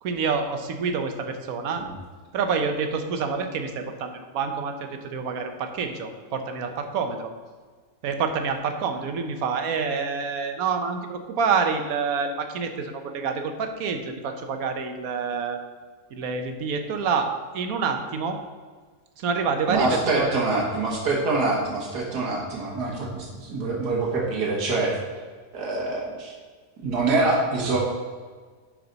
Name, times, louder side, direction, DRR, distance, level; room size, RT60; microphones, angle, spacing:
voice 1, 0.0-1.8 2.3-7.3 8.0-15.6 16.1-18.4 19.2-20.4, right 5 dB, 65° right, 6 dB, 1.2 m, -27 dB
voice 2, 19.7-24.9 25.5-26.3 26.8-27.8, right 3 dB, 90° right, -2 dB, 1.9 m, -25 dB
11.0 x 4.9 x 4.0 m, 1.5 s
omnidirectional pair, 1.7 m